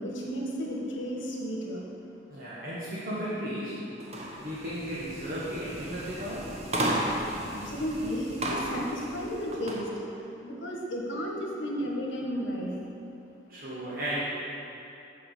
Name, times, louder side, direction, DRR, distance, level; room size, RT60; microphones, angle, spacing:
voice 1, 0.0-1.9 7.0-7.2 7.5-10.1 10.4-12.7, equal, 85° left, -1 dB, 1.5 m, -33 dB
voice 2, 2.3-3.8 4.4-6.5 13.5-14.2, equal, 50° right, -9 dB, 1.3 m, -35 dB
sound 1, 4.0-9.8, right 1 dB, 35° right, 0.9 m, -34 dB
7.9 x 4.8 x 6.6 m, 2.8 s
head